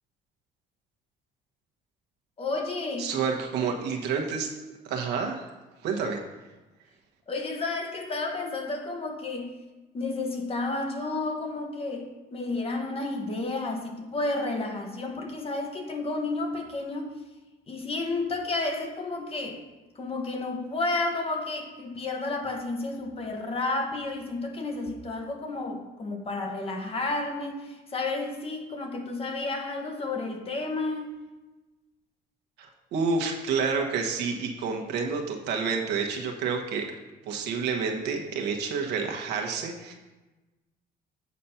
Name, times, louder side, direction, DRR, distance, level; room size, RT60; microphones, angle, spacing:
voice 1, 2.4-3.1 7.3-9.5 9.9-17.2 17.7-19.6 19.9-31.1, left 2 dB, 35° left, 3 dB, 1.3 m, -31 dB
voice 2, 3.0-4.5 4.8-5.5 5.8-6.2 32.6-36.8 37.2-39.9, right 5 dB, 80° right, 2 dB, 1.3 m, -29 dB
8.3 x 4.2 x 5.7 m, 1.1 s
cardioid pair, 110°, 17 cm